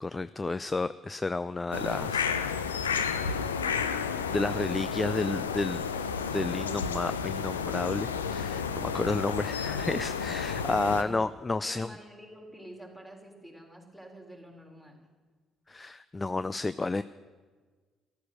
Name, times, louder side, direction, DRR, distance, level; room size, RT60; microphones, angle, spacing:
voice 1, 0.0-2.3 4.3-5.8 6.3-11.9 15.7-17.0, left 3 dB, 25° left, 15 dB, 0.4 m, -31 dB
sound 1, 1.7-11.0, left 6 dB, 90° left, 0.6 m, -31 dB
voice 2, 10.9-11.3 11.6-15.0, right 1 dB, 5° left, 1 dB, 3.8 m, -48 dB
14.0 x 12.5 x 6.5 m, 1.4 s
hypercardioid pair, 50°, 0 cm